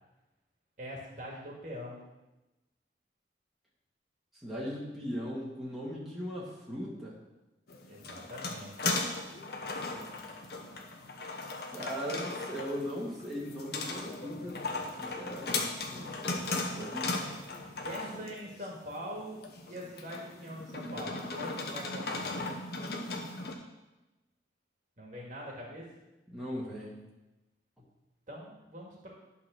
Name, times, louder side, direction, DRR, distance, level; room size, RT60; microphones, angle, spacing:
voice 1, 0.8-2.0 7.8-8.7 17.8-22.5 25.0-25.9 28.3-29.1, equal, 45° right, -3 dB, 1.9 m, -43 dB
voice 2, 4.4-7.2 11.7-17.2 26.3-27.0, equal, ahead, -7 dB, 1.9 m, -39 dB
sound 1, 7.7-23.5, left 3 dB, 60° left, 1.0 m, -37 dB
11.0 x 4.1 x 6.2 m, 1.0 s
head